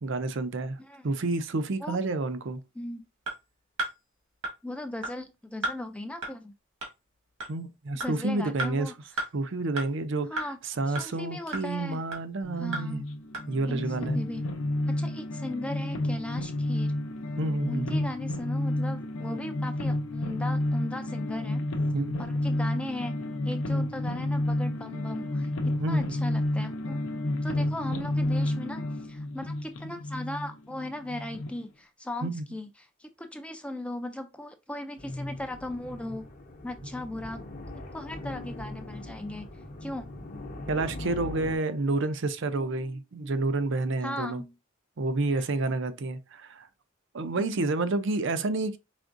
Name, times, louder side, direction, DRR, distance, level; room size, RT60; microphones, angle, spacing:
voice 1, 0.0-0.8 1.0-2.6 7.5-8.9 9.3-13.0 13.5-14.2 17.4-18.0 21.9-22.1 25.8-26.0 32.2-32.5 40.7-44.4 45.0-46.7 47.1-48.8, right 2 dB, 60° right, 0.5 m, -29 dB
voice 2, 2.8-3.1 4.6-6.5 8.0-8.9 10.3-10.6 10.9-12.0 12.6-13.0 13.7-14.4 15.0-16.9 17.7-21.6 22.2-23.2 23.4-27.0 27.4-32.7 33.0-36.2 36.6-37.4 37.7-39.5 39.8-40.0 44.0-44.5 45.3-45.7 47.4-47.6, left 1 dB, 5° left, 0.4 m, -37 dB
sound 1, 3.3-3.4 3.8-3.9 4.4-4.5 5.0-5.1 5.6-5.8 6.2-6.3 6.8-6.9 7.4-7.5 8.0-8.1 8.6-8.7 9.2-9.3 9.8-9.9 10.4-10.5 11.0-11.1 11.5-11.6 12.1-12.2 12.7-12.8 13.3-13.4, right 2 dB, 80° right, 1.7 m, -31 dB
sound 2, 12.4-31.5, left 1 dB, 70° left, 0.7 m, -30 dB
sound 3, 35.0-41.6, left 1 dB, 40° left, 0.8 m, -40 dB
5.0 x 3.4 x 2.6 m
head